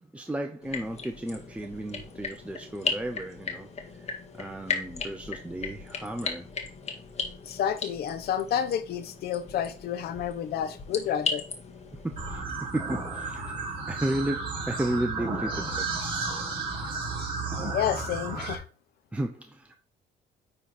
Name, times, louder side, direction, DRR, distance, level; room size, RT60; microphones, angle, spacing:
voice 1, 0.0-6.5 12.0-13.5 13.9-15.9 16.7-17.0 19.1-19.8, right 1 dB, 5° right, 0.8 m, -34 dB
sound 1, 0.6-12.4, left 5 dB, 40° left, 1.9 m, -37 dB
voice 2, 7.5-11.4 17.7-18.6, left 9 dB, 65° left, 1.1 m, -30 dB
sound 2, 12.2-18.5, right 3 dB, 30° right, 3.9 m, -33 dB
9.9 x 4.0 x 4.4 m
cardioid pair, 110°, 17 cm